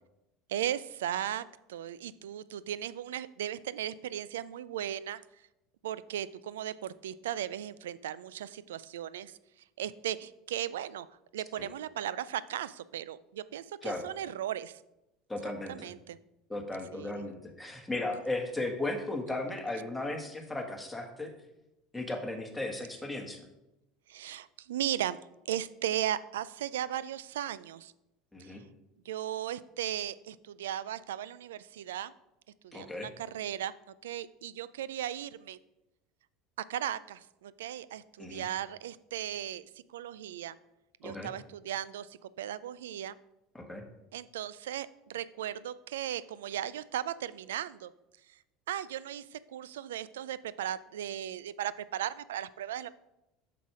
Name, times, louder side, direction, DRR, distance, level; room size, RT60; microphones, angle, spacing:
voice 1, 0.5-5.2 5.8-9.4 9.8-11.1 11.3-14.8 15.7-16.2 16.9-17.3 24.1-27.9 28.4-28.5 29.1-32.1 32.6-33.7 34.0-35.6 36.6-40.6 41.0-43.1 44.1-47.9 48.7-52.9, right 11 dB, 85° right, 18 dB, 0.3 m, -37 dB
voice 2, 15.3-15.9 16.5-21.3 21.9-23.4 28.3-28.6 32.7-33.1 38.2-38.5 41.0-41.3 43.5-43.8, left 2 dB, 5° left, 2 dB, 1.7 m, -36 dB
7.3 x 5.8 x 4.8 m, 0.92 s
hypercardioid pair, 85°, 0 cm